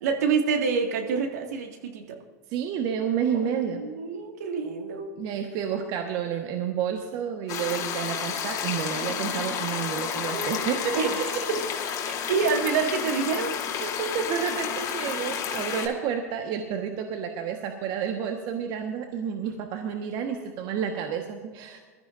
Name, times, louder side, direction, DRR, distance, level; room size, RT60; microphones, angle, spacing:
voice 1, 0.0-2.2 3.5-5.1 10.3-10.7 10.9-11.6 12.3-13.5, right 5 dB, 70° right, 3 dB, 2.1 m, -27 dB
voice 2, 2.5-3.8 5.2-11.3 13.8-21.8, right 8 dB, 50° right, 4 dB, 1.4 m, -30 dB
sound 1, 7.5-15.9, left 8 dB, 45° left, 2.2 m, -31 dB
21.0 x 13.5 x 2.6 m, 1.4 s
hypercardioid pair, 90°, 9 cm